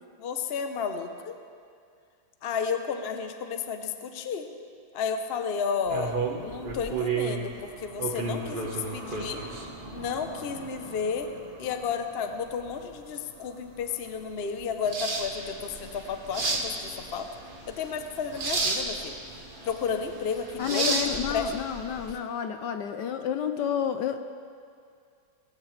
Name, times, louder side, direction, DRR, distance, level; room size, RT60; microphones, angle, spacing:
voice 1, 0.2-1.4 2.4-4.5 4.9-9.4 9.9-11.3 11.6-17.3 17.7-19.1 19.6-21.6, left 6 dB, 55° left, 7 dB, 0.7 m, -32 dB
sound 1, 5.9-22.1, right 3 dB, 30° right, 1.1 m, -33 dB
sound 2, 15.2-22.1, right 2 dB, 75° right, 2.7 m, -49 dB
voice 2, 20.6-24.2, left 9 dB, 70° left, 8 dB, 1.2 m, -30 dB
20.5 x 15.0 x 3.3 m, 2.2 s
omnidirectional pair, 2.2 m